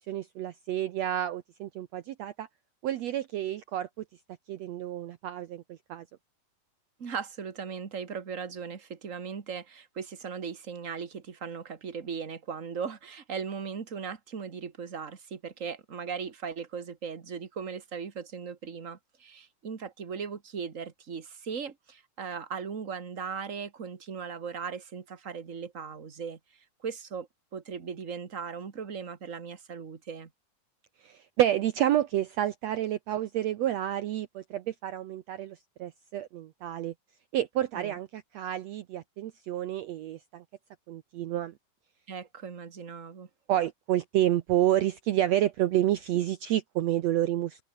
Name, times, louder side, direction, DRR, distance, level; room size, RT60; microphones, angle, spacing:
voice 1, 0.1-2.5 2.8-3.9 4.5-6.0 31.0-36.9 37.3-40.4 40.9-41.5 43.5-47.6, right 12 dB, 75° right, 1.6 m, -29 dB
voice 2, 7.0-26.4 26.8-30.3 37.7-38.0 42.1-43.3, right 6 dB, 40° right, 1.2 m, -38 dB
open air
omnidirectional pair, 4.0 m